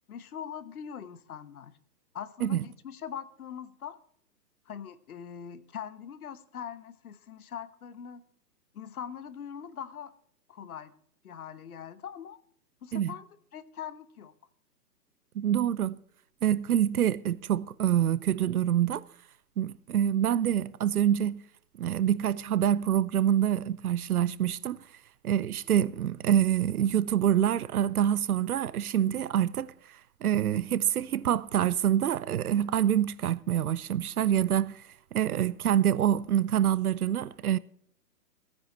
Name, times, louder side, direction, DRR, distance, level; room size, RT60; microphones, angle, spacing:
voice 1, 0.1-1.7 2.1-4.0 4.7-8.2 8.7-10.1 10.5-10.9 11.2-12.4 12.8-13.2 13.5-14.3, left 8 dB, 60° left, 1.2 m, -42 dB
voice 2, 15.4-16.0 16.4-19.0 19.6-21.4 21.8-24.8 25.2-29.7 30.2-34.8 35.1-37.6, right 10 dB, 65° right, 0.7 m, -26 dB
16.5 x 9.9 x 3.1 m
hypercardioid pair, 145°, 49 cm